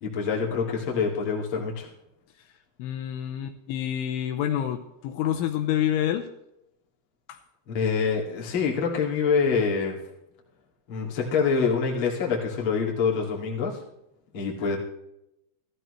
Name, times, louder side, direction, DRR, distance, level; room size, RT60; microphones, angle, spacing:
voice 1, 0.0-1.9 7.7-10.0 10.9-13.8 14.3-14.8, left 5 dB, 40° left, -2 dB, 2.1 m, -26 dB
voice 2, 2.8-6.3 7.3-7.4, left 11 dB, 80° left, 5 dB, 3.0 m, -28 dB
15.0 x 13.5 x 3.2 m, 0.84 s
omnidirectional pair, 5.8 m